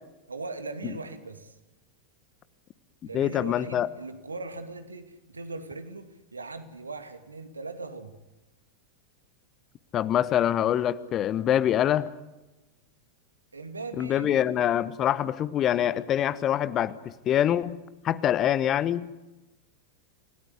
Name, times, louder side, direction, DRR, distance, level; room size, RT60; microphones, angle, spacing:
voice 1, 0.3-1.6 3.0-8.1 13.5-14.5, right 3 dB, 75° right, 2.6 m, -39 dB
voice 2, 3.1-3.9 9.9-12.1 14.0-17.8 18.0-19.1, left 10 dB, 30° left, 1.1 m, -25 dB
29.0 x 18.0 x 9.9 m
figure-of-eight pair, 90°, 0 cm